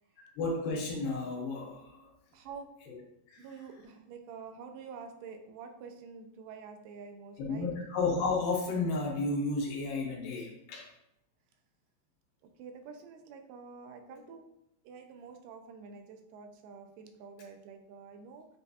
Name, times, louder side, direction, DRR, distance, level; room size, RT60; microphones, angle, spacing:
voice 1, 0.2-2.1 2.9-3.0 3.3-3.8 7.4-10.9 14.1-14.2, left 3 dB, 85° left, -2 dB, 2.6 m, -33 dB
voice 2, 2.3-2.7 3.4-7.7 12.4-14.4 14.8-18.5, right 5 dB, 85° right, 5 dB, 2.2 m, -48 dB
7.4 x 2.7 x 2.4 m, 0.80 s
omnidirectional pair, 3.8 m